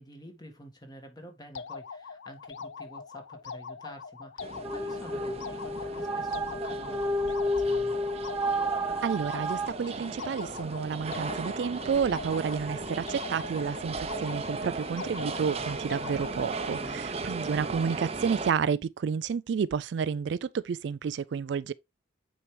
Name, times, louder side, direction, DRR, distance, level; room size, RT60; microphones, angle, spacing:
voice 1, 0.0-8.0 16.7-17.1, equal, 20° left, 1.8 m, -49 dB
sound 1, 1.6-16.9, left 5 dB, 75° left, 0.5 m, -43 dB
sound 2, 4.4-18.5, right 3 dB, 35° right, 0.7 m, -37 dB
sound 3, 4.6-9.7, equal, 10° right, 0.8 m, -31 dB
voice 2, 9.0-21.7, right 6 dB, 65° right, 0.3 m, -30 dB
8.7 x 4.7 x 3.3 m
head